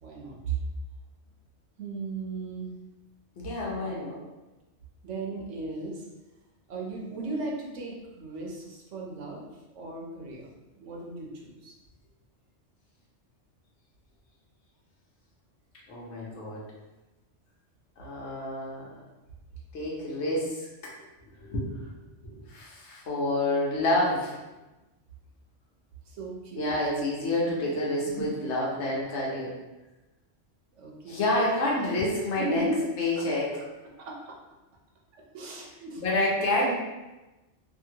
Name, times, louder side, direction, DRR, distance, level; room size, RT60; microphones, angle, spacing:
voice 1, 0.0-0.6 1.8-2.7 5.0-6.1 6.7-9.5 9.8-11.7 26.1-26.7 28.2-28.3 30.7-31.4 32.4-32.9 34.0-34.3 35.3-36.0, right 3 dB, 90° right, -2 dB, 1.0 m, -36 dB
voice 2, 3.4-4.2 15.9-16.6 18.0-18.9 19.7-20.7 21.2-21.9 22.2-24.4 26.6-29.5 31.1-32.6 33.0-33.5 36.0-36.7, left 1 dB, 70° left, -4 dB, 1.1 m, -28 dB
2.7 x 2.7 x 2.8 m, 1.1 s
omnidirectional pair, 1.2 m